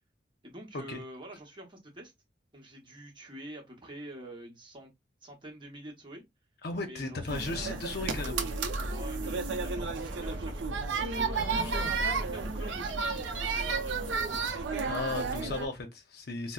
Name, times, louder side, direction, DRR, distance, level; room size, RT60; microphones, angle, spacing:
voice 1, 0.4-2.1 2.5-4.9 5.2-6.2 6.8-7.8 8.9-14.4, right 1 dB, 25° right, 0.9 m, -47 dB
voice 2, 6.6-8.5 11.3-11.9 14.9-16.5, left 3 dB, 60° left, 0.7 m, -36 dB
sound 1, 7.3-15.7, right 4 dB, 80° right, 0.5 m, -32 dB
4.0 x 2.0 x 2.4 m
head